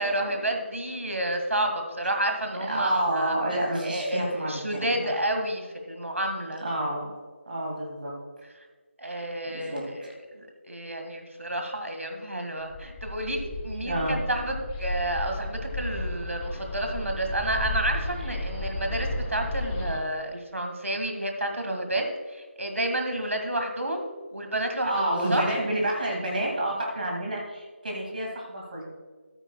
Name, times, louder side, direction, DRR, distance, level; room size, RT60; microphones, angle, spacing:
voice 1, 0.0-3.4 3.8-6.7 9.0-24.0 24.3-25.6, right 1 dB, 85° right, 4 dB, 1.9 m, -30 dB
voice 2, 2.7-5.1 6.6-7.1 7.5-8.1 9.5-10.1 13.8-14.2 24.9-28.8, right 1 dB, 40° right, -1 dB, 2.2 m, -29 dB
Bird, 12.7-20.0, left 1 dB, 10° left, 0.6 m, -33 dB
14.0 x 9.1 x 2.3 m, 1.4 s
figure-of-eight pair, 165°, 7 cm